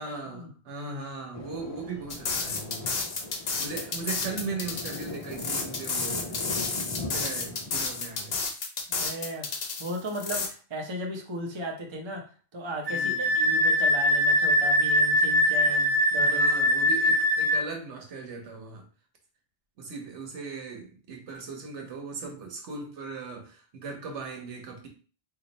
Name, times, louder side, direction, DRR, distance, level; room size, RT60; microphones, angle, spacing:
voice 1, 0.0-2.9 3.6-6.5 7.0-8.4 12.9-13.3 15.7-15.8 16.2-18.8 19.8-24.9, right 4 dB, 85° right, 3 dB, 1.2 m, -38 dB
Thunder, 1.3-8.4, left 2 dB, 45° left, 0.4 m, -40 dB
sound 1, 2.1-10.5, left 4 dB, 65° left, 0.9 m, -31 dB
voice 2, 8.9-9.5 9.8-12.2 12.5-16.5, right 1 dB, 30° right, 1 dB, 0.6 m, -36 dB
Wind instrument woodwind instrument, 12.9-17.6, left 1 dB, 60° right, 0.8 m, -22 dB
3.1 x 2.4 x 4.0 m, 0.38 s
omnidirectional pair, 1.2 m